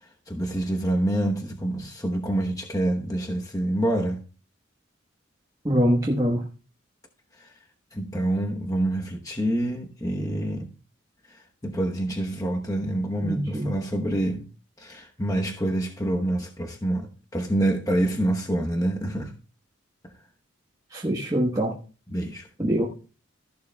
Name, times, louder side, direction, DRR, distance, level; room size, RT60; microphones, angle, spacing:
voice 1, 0.3-4.2 7.4-7.5 7.9-10.7 11.3-14.5 14.8-19.3 22.1-22.5, right 1 dB, 15° left, 1.0 m, -27 dB
voice 2, 5.6-6.5 13.2-13.7 20.9-21.8 22.6-22.9, equal, 15° right, 1.2 m, -24 dB
14.0 x 11.0 x 2.3 m
head